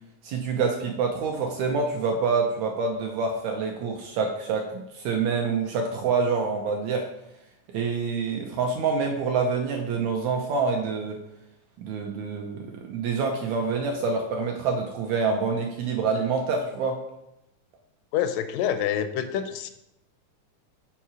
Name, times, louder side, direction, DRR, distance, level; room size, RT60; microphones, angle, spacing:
voice 1, 0.2-7.1 7.7-11.2 11.8-17.0, right 4 dB, 75° right, 2 dB, 1.8 m, -26 dB
voice 2, 18.1-19.7, left 9 dB, 85° left, 10 dB, 2.1 m, -27 dB
5.7 x 4.2 x 6.1 m, 0.85 s
omnidirectional pair, 3.8 m